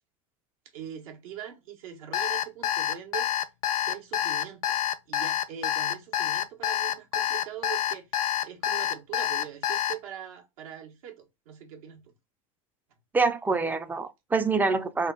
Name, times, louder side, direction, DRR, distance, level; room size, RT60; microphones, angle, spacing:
voice 1, 0.7-3.3 3.9-4.8 5.1-8.1 8.4-12.1, right 10 dB, 75° right, 1.2 m, -42 dB
Alarm, 2.1-9.9, left 10 dB, 80° left, 0.5 m, -27 dB
voice 2, 13.1-15.1, right 4 dB, 10° right, 0.4 m, -25 dB
3.6 x 2.2 x 3.8 m
supercardioid pair, 120°, 18 cm